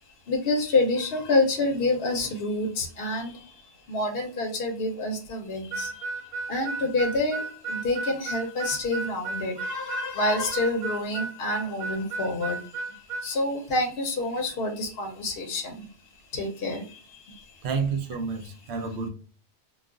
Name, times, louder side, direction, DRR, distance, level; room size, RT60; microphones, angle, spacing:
voice 1, 0.3-6.1 6.5-15.9 16.3-17.6, left 2 dB, 65° left, 0.9 m, -28 dB
Harmonica, 5.7-13.3, right 3 dB, 50° right, 0.4 m, -33 dB
voice 2, 17.6-19.1, right 5 dB, 75° right, 0.8 m, -29 dB
2.3 x 2.3 x 3.7 m
omnidirectional pair, 1.1 m